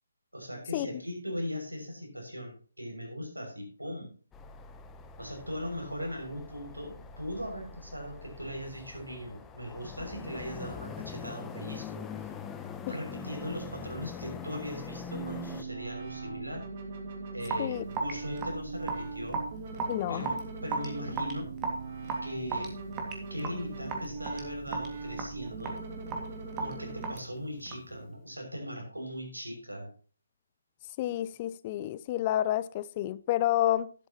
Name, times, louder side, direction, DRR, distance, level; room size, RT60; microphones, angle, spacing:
voice 1, 0.3-4.1 5.2-12.3 12.9-16.6 17.3-19.4 20.1-21.5 22.2-22.7 23.3-25.8 26.6-29.9, equal, 90° right, 6.4 m, -39 dB
sound 1, 4.3-15.6, left 5 dB, 10° left, 0.9 m, -43 dB
sound 2, 15.1-27.1, right 4 dB, 35° right, 2.7 m, -41 dB
Raindrop / Drip, 17.4-28.0, right 4 dB, 15° right, 2.2 m, -37 dB
voice 2, 19.9-20.3 31.0-33.9, left 13 dB, 25° left, 0.5 m, -29 dB
12.5 x 11.5 x 3.0 m
figure-of-eight pair, 145°, 0 cm